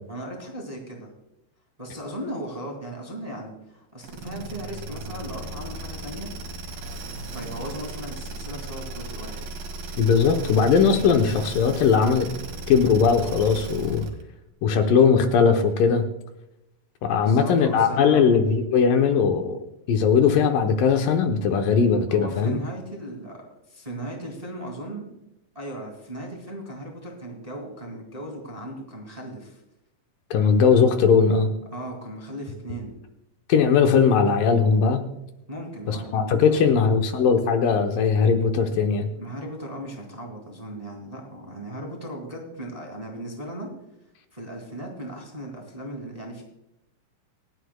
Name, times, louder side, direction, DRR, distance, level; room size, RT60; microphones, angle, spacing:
voice 1, 0.1-1.1 1.8-6.3 7.0-7.1 7.3-9.4 9.8-9.9 17.2-18.4 22.1-25.1 25.5-29.6 31.7-33.0 35.5-36.9 39.1-43.7 44.3-46.4, right 1 dB, 15° right, 1 dB, 1.7 m, -37 dB
sound 1, 4.0-14.2, right 2 dB, 75° right, 3.7 m, -36 dB
voice 2, 10.0-12.3 12.7-14.1 14.6-16.1 17.0-19.6 19.9-22.6 30.3-31.5 33.5-35.1 35.9-39.1, left 6 dB, 75° left, 5 dB, 2.5 m, -19 dB
27.5 x 9.8 x 2.3 m, 0.87 s
omnidirectional pair, 4.1 m